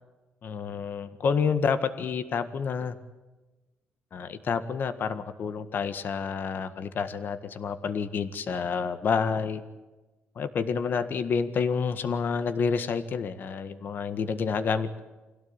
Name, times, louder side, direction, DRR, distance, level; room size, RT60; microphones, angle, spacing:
voice 1, 0.4-3.0 4.1-9.6 10.3-15.0, left 6 dB, 50° left, 11 dB, 1.7 m, -29 dB
25.5 x 17.0 x 8.9 m, 1.2 s
cardioid pair, 140°, 4 cm